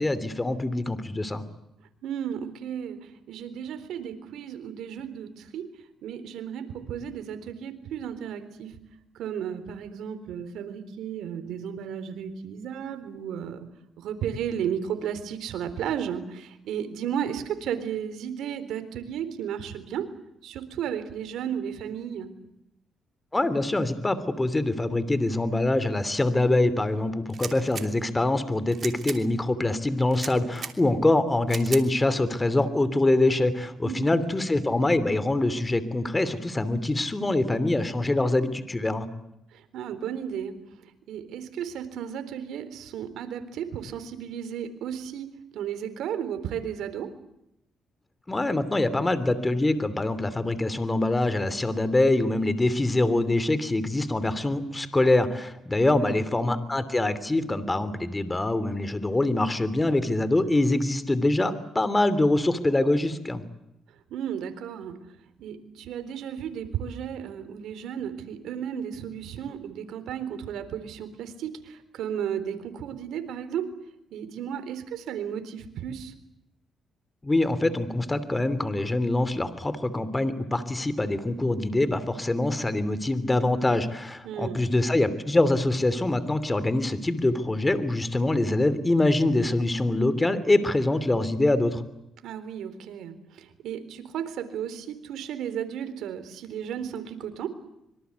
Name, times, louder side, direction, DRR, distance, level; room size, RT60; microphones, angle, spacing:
voice 1, 0.0-1.4 23.3-39.1 48.3-63.4 77.2-91.8, left 2 dB, 15° left, 14 dB, 2.9 m, -24 dB
voice 2, 2.0-5.8 6.0-8.8 9.1-13.7 14.0-20.1 20.4-22.3 33.8-34.2 39.5-47.1 55.8-56.2 64.1-65.0 65.4-73.7 74.1-76.1 84.2-84.6 92.2-97.5, right 8 dB, 80° right, 11 dB, 3.8 m, -34 dB
sound 1, 27.3-27.9 28.7-29.2 30.1-30.7 31.5-31.8, right 7 dB, 55° right, 3.0 m, -36 dB
26.0 x 24.5 x 8.3 m, 0.84 s
cardioid pair, 90°, 0 cm